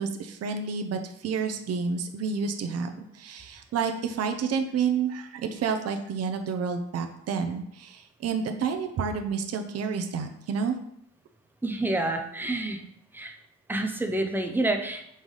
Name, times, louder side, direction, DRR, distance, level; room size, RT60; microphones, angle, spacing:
voice 1, 0.0-10.8, right 6 dB, 50° right, 6 dB, 0.6 m, -30 dB
voice 2, 11.6-12.8 13.1-13.3 13.7-15.0, right 2 dB, 5° right, 4 dB, 0.5 m, -28 dB
5.5 x 3.2 x 5.4 m, 0.75 s
cardioid pair, 175°, 32 cm